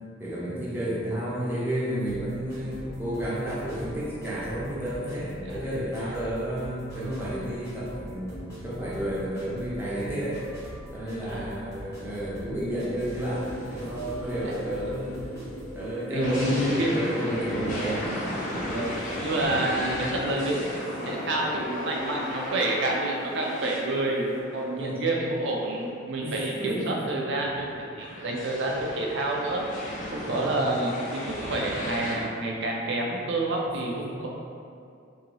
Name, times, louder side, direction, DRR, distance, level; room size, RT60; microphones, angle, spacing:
voice 1, 0.2-10.4 10.9-15.2 15.7-18.5 24.8-25.2 26.2-27.2 28.0-28.4 30.2-30.6 33.7-34.2, right 1 dB, 10° right, -8 dB, 0.7 m, -32 dB
sound 1, 2.1-15.8, equal, 15° left, 1.1 m, -44 dB
voice 2, 11.3-11.6 14.4-14.5 16.1-17.1 18.5-20.6 21.0-34.3, right 2 dB, 65° right, -1 dB, 0.5 m, -29 dB
sound 2, 13.0-24.4, left 1 dB, 85° left, 0.6 m, -41 dB
sound 3, 16.2-25.3 25.8-25.9 27.4-32.2, left 1 dB, 45° left, 0.6 m, -36 dB
2.7 x 2.6 x 2.9 m, 2.4 s
head